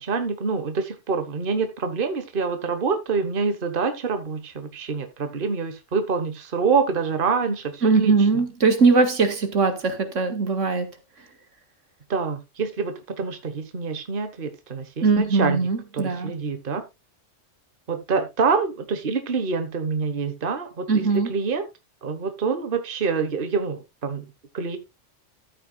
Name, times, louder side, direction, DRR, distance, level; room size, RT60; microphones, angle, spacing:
voice 1, 0.0-8.1 12.1-15.6 15.9-16.8 17.9-21.0 21.3-21.6 22.0-24.8, right 5 dB, 45° right, 1.4 m, -26 dB
voice 2, 7.8-10.9 11.2-11.3 15.0-16.3 20.9-21.3, right 4 dB, 70° right, 2.0 m, -20 dB
13.5 x 8.8 x 2.3 m
omnidirectional pair, 1.3 m